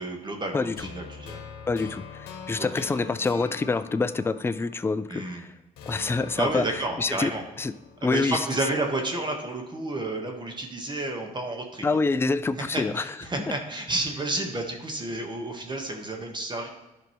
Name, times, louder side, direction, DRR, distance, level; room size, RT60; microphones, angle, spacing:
voice 1, 0.0-1.4 2.6-2.8 5.1-5.5 6.4-7.4 8.0-11.8 12.7-16.7, right 2 dB, 30° right, 3 dB, 1.4 m, -31 dB
voice 2, 0.5-0.9 1.7-5.5 5.9-6.6 7.0-7.3 7.6-7.7 8.0-8.4 11.8-13.0 13.5-13.6, left 3 dB, 15° left, 13 dB, 0.4 m, -26 dB
sound 1, 0.8-5.3 5.8-8.8, left 6 dB, 90° left, 0.9 m, -43 dB
11.5 x 5.2 x 3.1 m, 1.0 s
supercardioid pair, 75°, 16 cm